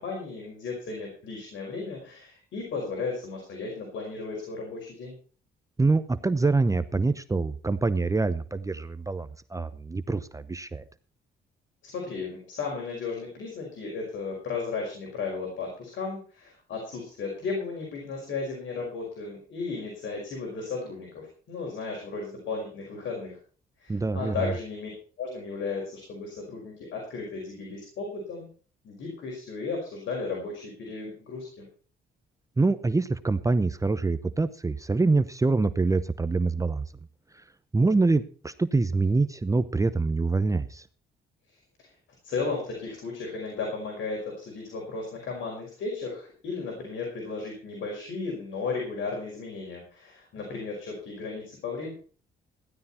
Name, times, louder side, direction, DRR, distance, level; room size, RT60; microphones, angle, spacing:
voice 1, 0.0-5.1 11.8-23.4 23.8-24.9 25.2-28.5 28.8-31.7 41.8-41.9 42.2-51.9, left 4 dB, 75° left, 0 dB, 5.4 m, -35 dB
voice 2, 5.8-10.8 23.9-24.5 32.6-36.9 37.3-37.4 37.7-40.9, right 3 dB, 15° right, 12 dB, 0.7 m, -25 dB
15.5 x 11.5 x 4.3 m, 0.40 s
cardioid pair, 90°, 20 cm